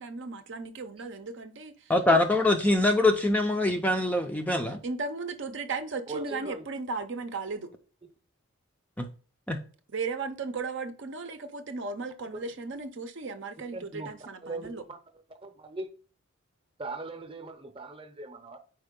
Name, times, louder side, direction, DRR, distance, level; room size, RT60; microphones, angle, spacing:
voice 1, 0.0-1.9 4.8-7.7 9.9-14.8, right 4 dB, 55° right, 0.6 m, -36 dB
voice 2, 1.9-4.8 9.0-9.1 9.5-9.6, left 2 dB, 5° left, 0.4 m, -24 dB
voice 3, 6.1-6.6 12.3-12.4 13.7-14.1 14.4-15.0 15.4-15.9 16.8-18.6, right 2 dB, 25° right, 0.8 m, -39 dB
4.6 x 4.4 x 5.1 m
head